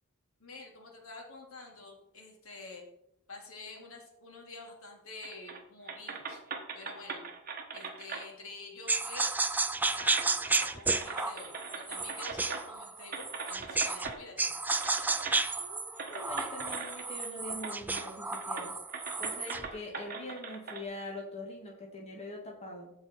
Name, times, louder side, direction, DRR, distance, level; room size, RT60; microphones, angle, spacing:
voice 1, 0.4-2.9 3.3-6.4 6.7-7.2 7.7-9.4 9.8-14.6, left 3 dB, 75° left, 0 dB, 2.3 m, -48 dB
sound 1, 5.2-5.6 5.9-8.3 9.4-9.5 9.9-12.8 13.1-14.2 14.7-15.4 16.0-17.3 17.6-18.1 18.3-20.8, right 5 dB, 40° right, 1.2 m, -41 dB
sound 2, 8.9-14.1 14.4-19.7, right 3 dB, 10° right, 0.3 m, -32 dB
voice 2, 15.6-18.7 19.2-22.9, left 1 dB, 30° left, 0 dB, 1.8 m, -43 dB
14.5 x 4.8 x 4.2 m, 0.80 s
head